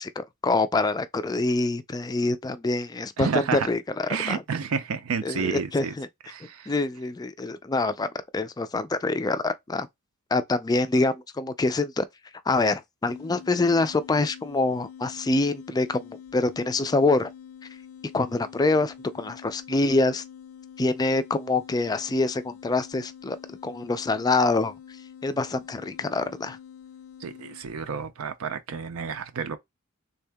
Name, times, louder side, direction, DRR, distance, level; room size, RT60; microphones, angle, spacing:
voice 1, 0.0-3.8 4.3-4.4 5.2-6.1 6.4-9.9 10.3-12.0 12.5-17.3 18.1-20.2 20.8-23.4 23.6-24.7 25.2-26.6, left 3 dB, 20° left, 0.3 m, -25 dB
voice 2, 3.2-3.7 4.1-5.9 6.3-6.7 27.2-29.6, right 6 dB, 70° right, 0.5 m, -30 dB
sound 1, 13.1-27.8, left 8 dB, 85° left, 0.5 m, -46 dB
3.5 x 2.7 x 3.4 m
head